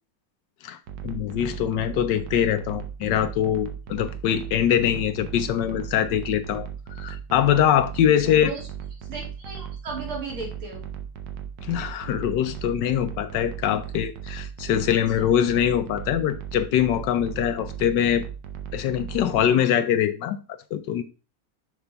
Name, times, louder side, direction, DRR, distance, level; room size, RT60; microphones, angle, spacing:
sound 1, 0.9-19.5, right 9 dB, 65° right, 1.4 m, -37 dB
voice 1, 1.0-6.7 7.0-8.5 11.6-18.2 18.7-20.4 20.7-21.0, left 10 dB, 70° left, 1.1 m, -23 dB
voice 2, 8.2-8.7 9.0-10.9 14.9-15.3, right 3 dB, 85° right, 3.5 m, -36 dB
6.9 x 5.5 x 3.4 m
omnidirectional pair, 2.3 m